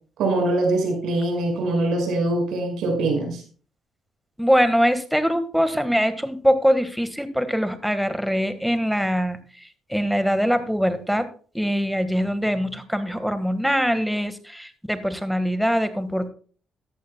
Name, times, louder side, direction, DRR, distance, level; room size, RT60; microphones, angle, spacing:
voice 1, 0.2-3.4, right 2 dB, 75° right, 3 dB, 5.6 m, -23 dB
voice 2, 4.4-9.4 9.9-11.3 11.5-16.3, equal, ahead, 10 dB, 1.6 m, -22 dB
14.5 x 11.0 x 2.3 m, 0.41 s
cardioid pair, 85°, 0 cm